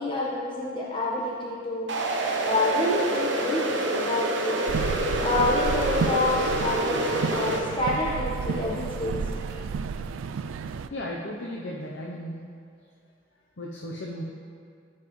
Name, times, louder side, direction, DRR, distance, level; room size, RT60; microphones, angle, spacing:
voice 1, 0.0-1.9 2.4-4.6 5.2-9.2, left 2 dB, 25° left, -5 dB, 1.2 m, -28 dB
sound 1, 1.9-7.6, right 1 dB, 65° right, 0.9 m, -27 dB
sound 2, 4.7-10.9, right 5 dB, 80° right, 0.3 m, -31 dB
voice 2, 10.9-12.4 13.6-14.2, left 1 dB, 60° left, -2 dB, 0.7 m, -35 dB
14.0 x 5.8 x 3.2 m, 2.2 s
head